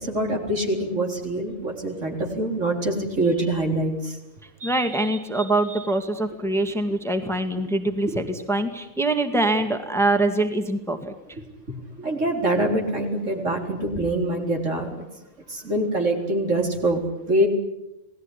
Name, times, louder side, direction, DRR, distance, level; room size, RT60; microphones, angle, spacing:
voice 1, 0.0-4.2 4.6-4.7 12.0-15.0 15.5-17.5, right 1 dB, 60° right, 2 dB, 4.6 m, -24 dB
voice 2, 4.6-11.4, right 2 dB, ahead, 6 dB, 2.1 m, -24 dB
29.0 x 19.0 x 10.0 m, 0.94 s
omnidirectional pair, 1.4 m